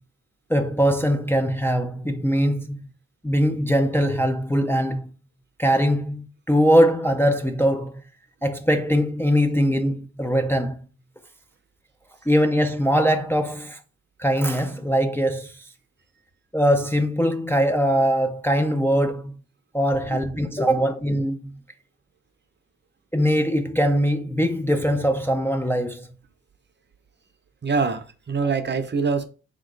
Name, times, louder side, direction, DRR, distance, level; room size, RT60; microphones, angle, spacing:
voice 1, 0.5-2.9 3.2-5.1 5.6-8.0 8.4-10.8 12.3-13.8 14.2-15.5 16.5-19.4 19.7-21.6 23.1-26.1, equal, 10° left, 0.5 m, -21 dB
voice 2, 27.6-29.2, right 4 dB, 35° right, 0.7 m, -25 dB
3.5 x 2.9 x 3.9 m
supercardioid pair, 50°, 29 cm